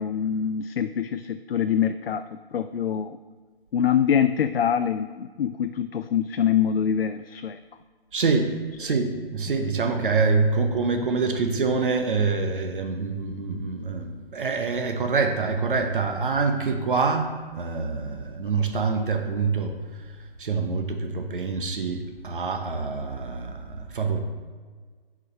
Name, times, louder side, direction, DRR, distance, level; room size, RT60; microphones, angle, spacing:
voice 1, 0.0-3.2 3.7-7.6 8.8-8.9, left 8 dB, 70° left, 10 dB, 0.5 m, -25 dB
voice 2, 8.1-8.5 8.8-19.7 20.1-24.2, right 4 dB, 55° right, 4 dB, 0.9 m, -26 dB
8.1 x 5.0 x 4.3 m, 1.5 s
hypercardioid pair, 160°, 31 cm